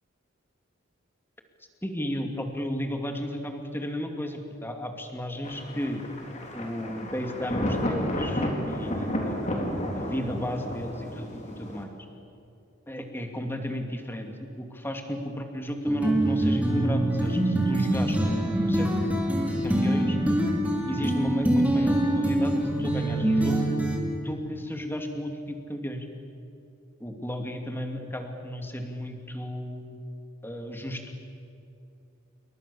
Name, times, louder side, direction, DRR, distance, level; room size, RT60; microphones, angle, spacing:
voice 1, 1.8-6.0 6.5-11.9 12.9-14.3 14.6-20.2 20.9-23.7 24.2-26.1 27.0-30.0 30.4-31.0, equal, 10° left, 4 dB, 2.6 m, -33 dB
Thunder, 5.4-11.8, equal, 35° left, 3.9 m, -32 dB
sound 1, 15.8-24.0, right 1 dB, 5° right, 3.6 m, -24 dB
28.5 x 23.0 x 7.1 m, 2.6 s
head